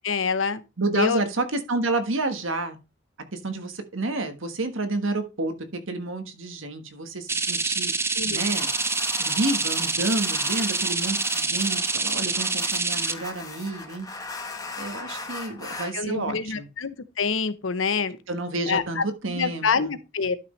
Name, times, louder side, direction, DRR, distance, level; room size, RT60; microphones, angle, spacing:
voice 1, 0.0-0.6 0.9-1.2 8.2-8.4 15.9-18.2 18.7-20.4, left 5 dB, 80° left, 0.8 m, -26 dB
voice 2, 0.8-2.8 3.3-5.5 5.9-8.7 9.2-14.1 14.8-16.7 18.3-19.9, right 2 dB, 80° right, 1.4 m, -29 dB
sound 1, 7.3-13.1, right 4 dB, 15° right, 0.5 m, -26 dB
sound 2, 8.3-15.9, left 3 dB, 20° left, 1.4 m, -38 dB
12.0 x 6.0 x 3.2 m
head